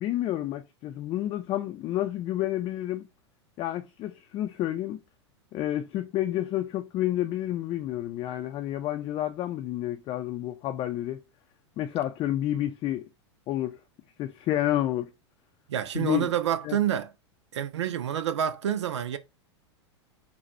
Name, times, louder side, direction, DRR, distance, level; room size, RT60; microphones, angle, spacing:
voice 1, 0.0-3.1 3.6-5.0 5.5-11.2 11.8-13.1 13.5-13.8 14.2-15.1 15.9-16.3 16.6-16.8, left 13 dB, 35° left, 0.5 m, -30 dB
voice 2, 15.7-17.1 17.5-19.2, right 10 dB, 75° right, 0.6 m, -28 dB
4.0 x 2.3 x 4.2 m
hypercardioid pair, 95°, 15 cm